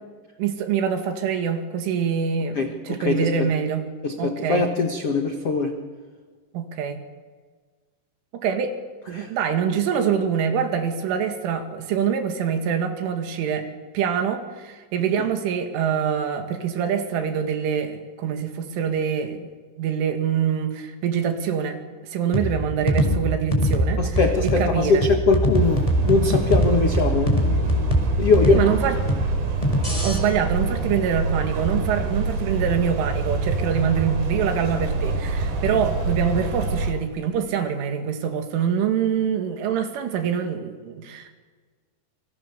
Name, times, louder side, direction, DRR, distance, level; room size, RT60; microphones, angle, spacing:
voice 1, 0.4-3.9 4.2-4.7 6.5-7.0 8.3-8.8 9.1-13.7 13.9-19.5 19.8-25.1 28.5-29.0 30.0-41.4, right 7 dB, 80° right, 6 dB, 4.6 m, -25 dB
voice 2, 2.5-3.5 4.0-5.7 9.1-9.3 24.0-28.6 29.0-29.1, left 4 dB, 85° left, 4 dB, 1.3 m, -22 dB
sound 1, 22.3-30.2, equal, 5° left, 4.2 m, -23 dB
sound 2, 25.5-36.9, right 3 dB, 60° right, 5.3 m, -26 dB
29.0 x 25.0 x 7.0 m, 1.5 s
omnidirectional pair, 5.6 m